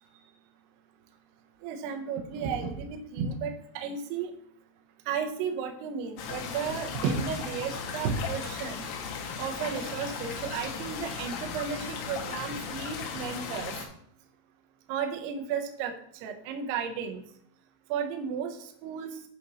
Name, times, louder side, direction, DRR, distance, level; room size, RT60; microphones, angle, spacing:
voice 1, 1.6-4.3 5.1-8.8 9.4-13.7 14.9-15.9 16.2-17.2 17.9-18.6 18.8-19.1, right 6 dB, 75° right, 4 dB, 2.6 m, -33 dB
sound 1, 6.2-13.9, left 5 dB, 80° left, 3.3 m, -37 dB
12.5 x 5.1 x 3.0 m, 0.66 s
omnidirectional pair, 5.5 m